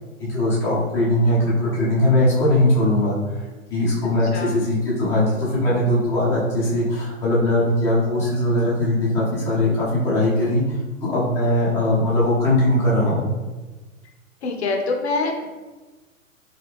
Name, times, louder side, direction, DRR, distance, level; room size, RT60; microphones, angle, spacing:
voice 1, 0.2-3.2 3.7-13.3, left 1 dB, 5° left, -8 dB, 0.5 m, -20 dB
voice 2, 14.4-15.6, left 3 dB, 50° left, 1 dB, 0.6 m, -25 dB
3.2 x 2.3 x 3.3 m, 1.2 s
figure-of-eight pair, 110°, 41 cm